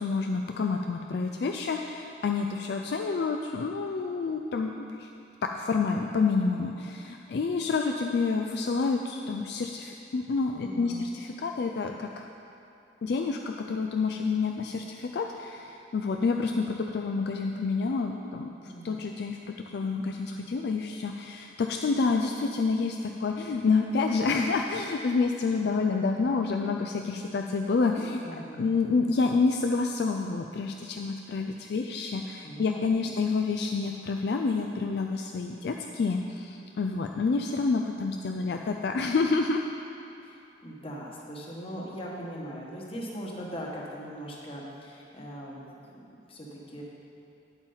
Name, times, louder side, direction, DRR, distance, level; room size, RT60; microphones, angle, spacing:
voice 1, 0.0-5.1 5.4-12.3 13.0-39.6, left 4 dB, 60° left, 3 dB, 0.4 m, -28 dB
voice 2, 10.6-11.1 18.6-19.1 28.2-28.7 32.4-33.2 40.2-46.8, equal, 30° left, -3 dB, 1.2 m, -40 dB
8.9 x 8.0 x 3.9 m, 2.7 s
head